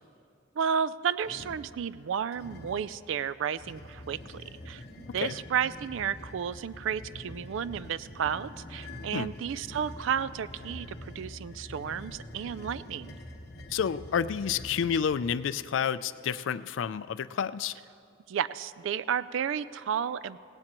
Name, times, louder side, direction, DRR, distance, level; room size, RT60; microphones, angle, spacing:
voice 1, 0.6-13.1 18.3-20.4, right 8 dB, 70° right, 16 dB, 0.3 m, -32 dB
sound 1, 1.2-1.7 2.3-2.9 3.5-15.5, left 1 dB, 55° left, 1.1 m, -45 dB
voice 2, 5.1-5.4 9.1-9.3 13.7-17.7, left 7 dB, 70° left, 15 dB, 0.4 m, -30 dB
17.5 x 17.0 x 3.0 m, 2.5 s
head